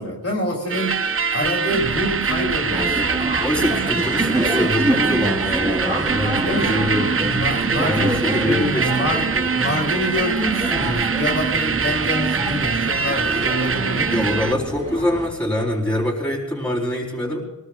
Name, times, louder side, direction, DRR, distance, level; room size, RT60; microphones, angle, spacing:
voice 1, 0.0-3.3 6.4-6.8 7.2-9.3 9.5-14.3, left 1 dB, 40° left, -3 dB, 3.2 m, -26 dB
sound 1, 0.7-14.5, right 6 dB, 35° right, 0.5 m, -23 dB
sound 2, 2.7-15.3, equal, 20° right, 4.3 m, -27 dB
voice 2, 3.4-7.0 7.8-9.5 14.1-17.4, left 1 dB, 5° left, -5 dB, 3.9 m, -24 dB
sound 3, 5.2-5.9, right 4 dB, 75° right, 1.3 m, -32 dB
25.5 x 19.5 x 2.4 m, 1.1 s
wide cardioid pair, 85°, 37 cm